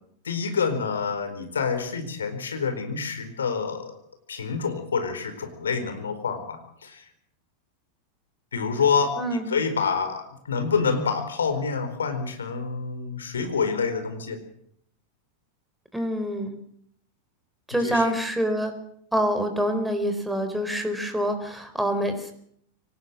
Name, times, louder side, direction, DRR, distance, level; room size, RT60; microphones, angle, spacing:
voice 1, 0.2-3.9 4.3-7.0 8.5-14.4 17.8-18.1, left 5 dB, 70° left, 9 dB, 4.4 m, -27 dB
voice 2, 9.2-9.5 15.9-16.5 17.7-18.7 19.1-22.3, equal, 5° right, 6 dB, 4.4 m, -26 dB
24.5 x 18.5 x 7.5 m, 0.66 s
figure-of-eight pair, 90°, 0 cm